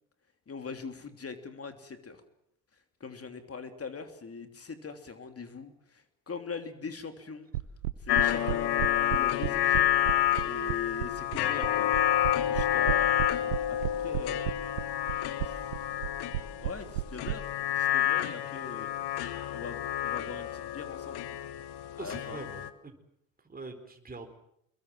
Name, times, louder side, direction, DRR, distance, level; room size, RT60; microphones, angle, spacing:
voice 1, 0.5-2.2 3.0-7.5 8.0-9.9 10.4-11.9 12.4-13.2 13.7-14.4 15.4-16.0 16.6-18.9 19.5-21.2 21.9-22.4, left 5 dB, 35° left, 7 dB, 3.1 m, -41 dB
sound 1, 7.5-17.3, right 16 dB, 90° right, 1.0 m, -32 dB
sound 2, 8.1-22.7, left 11 dB, 65° left, 1.7 m, -29 dB
voice 2, 22.0-23.0 23.4-24.3, right 3 dB, 20° right, 4 dB, 4.3 m, -43 dB
26.0 x 22.0 x 7.6 m, 0.74 s
hypercardioid pair, 60°, 42 cm